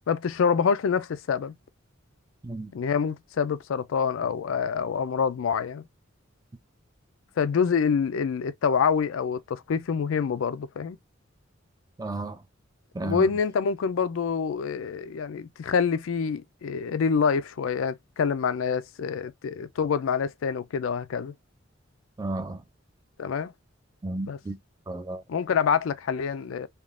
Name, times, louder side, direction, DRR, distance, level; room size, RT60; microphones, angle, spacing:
voice 1, 0.1-1.5 2.7-5.9 7.4-11.0 13.0-21.3 23.2-23.5 24.3-24.4 25.3-26.7, left 6 dB, 75° left, 0.4 m, -26 dB
voice 2, 12.0-12.4 12.9-13.3 22.2-22.6 24.0-24.6 24.9-25.2, right 2 dB, 20° right, 0.4 m, -33 dB
3.5 x 2.4 x 2.3 m
head